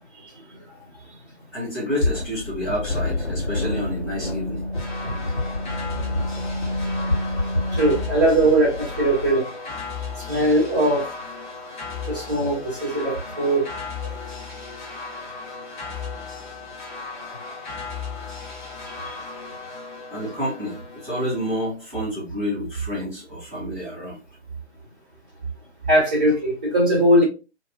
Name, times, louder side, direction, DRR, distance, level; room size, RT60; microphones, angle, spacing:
voice 1, 1.5-4.7 5.0-5.1 20.1-24.2, equal, 10° left, 1.2 m, -29 dB
sound 1, 2.0-9.3, left 2 dB, 70° left, 1.7 m, -27 dB
sound 2, 4.7-21.6, left 4 dB, 45° left, 1.3 m, -36 dB
voice 2, 7.7-9.5 10.3-11.0 12.1-14.1 25.9-27.2, right 1 dB, 10° right, 0.5 m, -20 dB
2.9 x 2.5 x 2.3 m
figure-of-eight pair, 145°, 35 cm